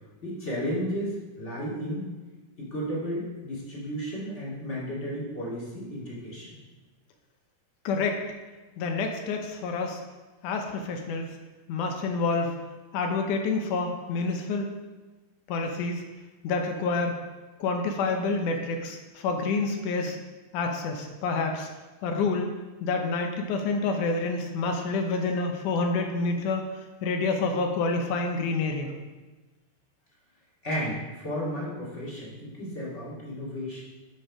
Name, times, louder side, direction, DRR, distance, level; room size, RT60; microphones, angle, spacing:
voice 1, 0.2-2.1 2.6-6.6 30.6-33.8, equal, 20° left, -6 dB, 2.1 m, -33 dB
voice 2, 7.9-8.2 8.8-10.0 10.4-11.3 11.7-12.5 12.9-14.7 15.5-16.0 16.4-17.1 17.6-20.2 20.5-21.7 22.0-22.5 22.8-26.6 27.0-28.9, left 3 dB, 75° left, 4 dB, 1.9 m, -28 dB
11.0 x 5.3 x 4.8 m, 1.2 s
omnidirectional pair, 4.5 m